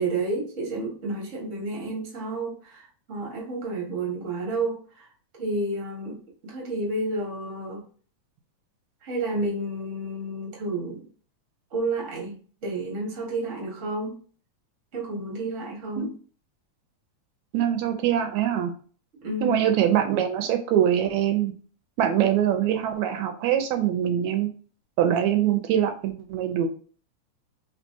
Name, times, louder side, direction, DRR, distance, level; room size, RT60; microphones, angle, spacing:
voice 1, 0.0-5.1 5.4-7.8 9.0-11.1 11.7-14.2 14.9-16.1 19.2-19.7, right 2 dB, 40° right, 1.1 m, -31 dB
voice 2, 17.5-18.7 19.4-21.5 22.0-24.5 25.0-26.7, right 10 dB, 80° right, 1.9 m, -23 dB
4.4 x 3.3 x 2.7 m
omnidirectional pair, 3.3 m